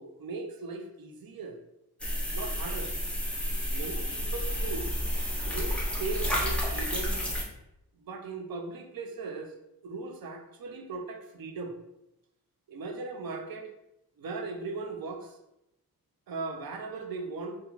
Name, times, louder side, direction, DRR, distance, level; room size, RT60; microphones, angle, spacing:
voice 1, 0.0-1.6 2.3-2.9 3.6-4.9 5.5-7.2 8.0-9.5 9.8-11.8 12.7-13.7 14.2-15.4 16.3-17.6, right 3 dB, 70° right, 5 dB, 0.5 m, -38 dB
sound 1, 2.0-7.4, equal, 5° left, 0.6 m, -31 dB
2.3 x 2.3 x 3.0 m, 0.85 s
wide cardioid pair, 80°, 37 cm